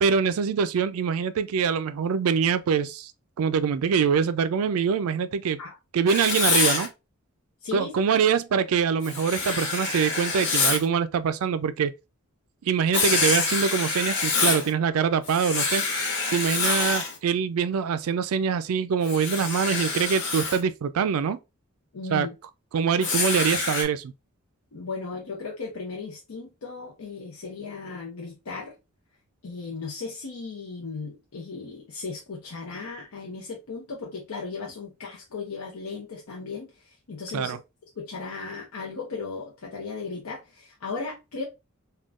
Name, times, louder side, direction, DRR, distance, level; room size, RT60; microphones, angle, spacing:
voice 1, 0.0-3.1 3.4-5.6 5.9-6.9 7.7-11.9 12.7-15.8 16.3-21.4 22.1-22.3 22.7-24.1 37.3-37.6, right 6 dB, 75° right, 0.3 m, -24 dB
Writing, 6.1-6.9 9.0-10.8 12.9-14.7 15.3-17.2 19.0-20.6 23.0-23.8, left 4 dB, 60° left, 0.9 m, -26 dB
voice 2, 7.6-8.0 21.9-22.3 24.7-28.7 29.4-37.6 38.0-41.4, left 4 dB, 90° left, 0.7 m, -36 dB
3.5 x 2.2 x 2.3 m
head